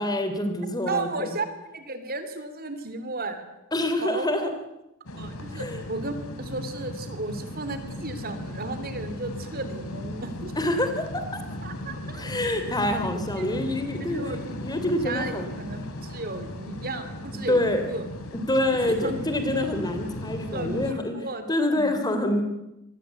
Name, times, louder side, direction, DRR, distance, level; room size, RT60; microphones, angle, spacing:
voice 1, 0.0-1.4 3.7-4.5 5.5-5.8 10.5-11.2 12.2-15.5 17.5-17.8 18.5-21.1 21.5-22.4, left 1 dB, 20° left, 7 dB, 3.2 m, -26 dB
voice 2, 0.9-3.4 4.0-4.5 5.2-10.7 11.6-12.3 13.4-13.5 14.0-14.4 14.8-17.6 17.9-18.0 19.0-19.1 20.5-22.1, right 2 dB, 45° right, 10 dB, 3.0 m, -34 dB
sound 1, 5.1-20.9, left 1 dB, 80° left, 3.1 m, -37 dB
26.5 x 22.0 x 8.4 m, 0.92 s
head